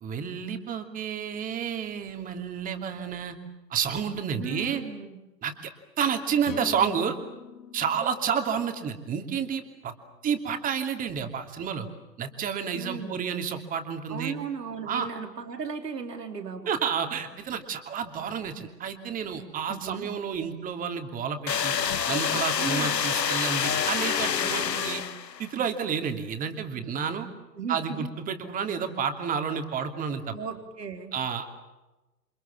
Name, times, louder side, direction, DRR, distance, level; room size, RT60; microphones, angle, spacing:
voice 1, 0.0-3.4 3.7-4.8 5.4-5.7 6.0-7.2 7.7-9.9 10.2-11.9 12.2-14.3 14.9-15.1 16.7-21.7 22.1-25.0 25.4-27.3 27.7-30.3 31.1-31.6, right 7 dB, 15° right, 6 dB, 2.8 m, -30 dB
voice 2, 4.4-5.2 12.7-13.2 14.1-16.7 19.7-20.1 22.6-23.0 27.5-28.1 30.3-31.1, right 6 dB, 70° right, 5 dB, 4.1 m, -36 dB
sound 1, 6.4-10.2, left 9 dB, 50° left, 3.8 m, -45 dB
sound 2, 21.5-25.5, left 7 dB, 75° left, 1.2 m, -27 dB
29.0 x 27.0 x 7.2 m, 1.1 s
figure-of-eight pair, 120°, 50 cm